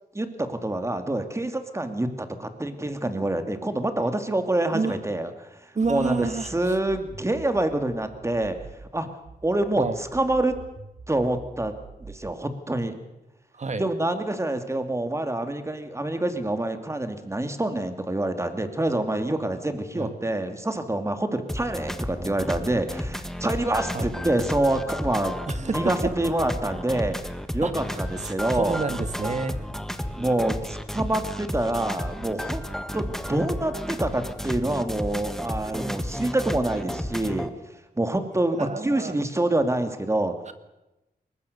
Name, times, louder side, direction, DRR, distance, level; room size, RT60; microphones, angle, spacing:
voice 1, 0.1-5.3 5.9-8.6 8.9-9.1 9.4-9.8 10.1-10.6 11.1-11.7 12.0-13.0 13.8-27.2 27.5-28.8 30.1-32.6 32.9-37.5 38.0-40.3, right 1 dB, 15° right, 8 dB, 2.4 m, -26 dB
voice 2, 5.7-6.8 9.8-10.0 13.5-13.9 19.9-20.2 23.9-24.1 25.5-26.1 27.6-27.7 28.2-29.6 38.3-39.2 40.5-40.6, right 4 dB, 45° right, 11 dB, 1.6 m, -29 dB
sound 1, 5.8-8.8 9.2-12.3, right 4 dB, 70° right, 6.0 m, -45 dB
sound 2, 21.5-37.5, equal, 5° left, 1.3 m, -32 dB
22.0 x 20.0 x 6.7 m, 0.98 s
cardioid pair, 80°, 16 cm